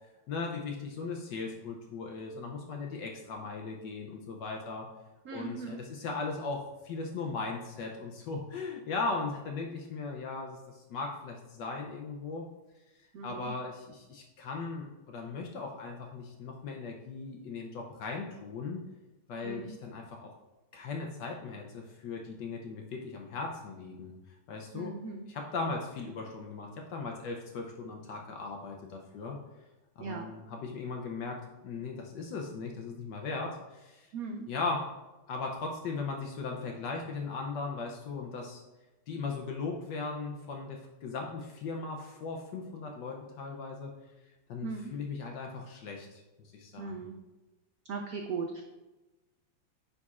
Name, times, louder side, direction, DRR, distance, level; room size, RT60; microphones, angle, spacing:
voice 1, 0.3-4.9 5.3-12.5 13.2-18.8 19.3-20.3 20.7-24.1 24.5-25.0 25.3-29.4 30.0-34.1 34.5-34.9 35.3-38.6 39.1-43.9 44.5-46.9, left 4 dB, 70° left, 1 dB, 1.2 m, -38 dB
voice 2, 5.2-5.8 13.1-13.6 19.4-19.8 24.7-25.3 30.0-30.3 34.1-34.5 44.6-44.9 46.8-47.1 47.9-48.6, right 4 dB, 90° right, 2 dB, 0.8 m, -38 dB
9.8 x 4.1 x 2.4 m, 1.1 s
omnidirectional pair, 2.2 m